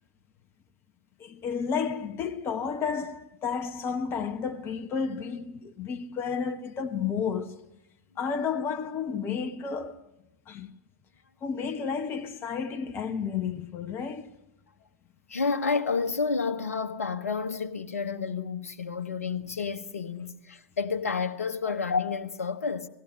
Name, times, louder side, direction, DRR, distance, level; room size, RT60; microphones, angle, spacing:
voice 1, 1.2-7.6 8.2-10.1 10.5-10.7 11.4-14.3, left 6 dB, 30° left, 1.0 m, -31 dB
voice 2, 15.3-22.9, left 5 dB, 75° left, 0.9 m, -30 dB
18.5 x 16.0 x 9.9 m
figure-of-eight pair, 95°, 8 cm